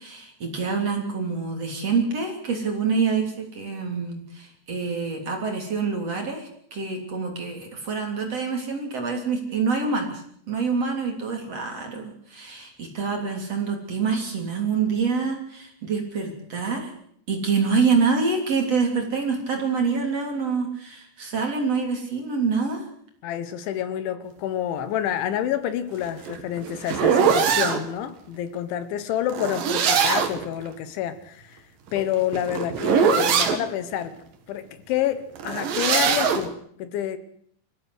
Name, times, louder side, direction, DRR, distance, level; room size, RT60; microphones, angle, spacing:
voice 1, 0.0-16.9 17.3-22.9, right 5 dB, 35° right, 3.8 m, -26 dB
voice 2, 23.2-31.6 31.9-34.2 34.5-37.2, left 11 dB, 80° left, 3.6 m, -28 dB
sound 1, 26.0-27.8 29.3-30.5 31.9-33.6 35.4-36.5, right 7 dB, 55° right, 3.1 m, -22 dB
25.5 x 15.0 x 8.1 m
omnidirectional pair, 5.5 m